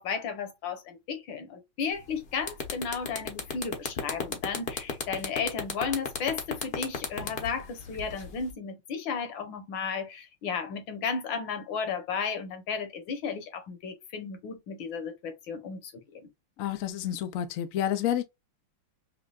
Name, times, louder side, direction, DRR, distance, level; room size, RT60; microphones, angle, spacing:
voice 1, 0.0-16.3, left 6 dB, 70° left, 1.7 m, -34 dB
sound 1, 2.0-2.1 2.4-8.5, left 5 dB, 45° left, 0.7 m, -33 dB
voice 2, 16.6-18.2, left 11 dB, 85° left, 0.7 m, -29 dB
5.4 x 2.2 x 2.3 m
omnidirectional pair, 2.2 m